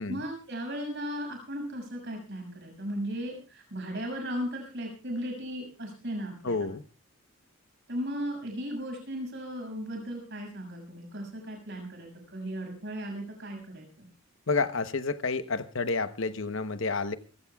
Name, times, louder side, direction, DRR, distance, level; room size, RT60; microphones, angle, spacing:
voice 1, 0.0-6.7 7.9-14.1, equal, 50° right, 2 dB, 6.4 m, -36 dB
voice 2, 6.4-6.8 14.5-17.2, left 4 dB, 60° left, 11 dB, 1.0 m, -29 dB
26.5 x 15.5 x 2.3 m, 0.32 s
head